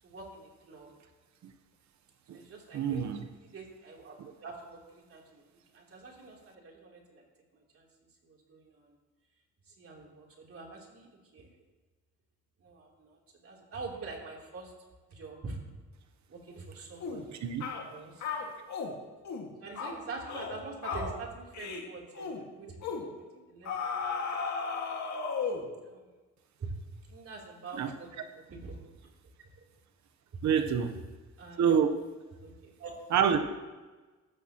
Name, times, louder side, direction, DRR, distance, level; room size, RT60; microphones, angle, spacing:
voice 1, 0.0-0.9 2.3-3.1 3.3-5.4 5.7-7.2 7.5-7.9 8.2-9.0 9.7-11.1 11.3-11.5 12.6-14.7 15.1-15.6 16.3-18.4 19.6-23.1 23.5-24.4 25.8-26.0 26.6-26.7 27.1-28.8 29.4-29.6 30.3-30.4 31.4-31.8 32.4-33.0, right 3 dB, 50° right, -1 dB, 3.3 m, -45 dB
voice 2, 2.7-3.2 17.4-17.6 27.8-27.9 30.4-30.9 31.6-31.9 33.1-33.4, right 7 dB, 70° right, 7 dB, 0.9 m, -26 dB
sound 1, 17.0-17.2 17.6-17.8 18.2-18.9 19.3-19.5 19.8-20.0 20.3-20.6 20.8-21.1 21.5-21.8 22.2-22.4 22.8-23.1 23.7-25.7, left 5 dB, 65° left, 2.0 m, -35 dB
14.5 x 13.0 x 3.0 m, 1.3 s
cardioid pair, 90°, 30 cm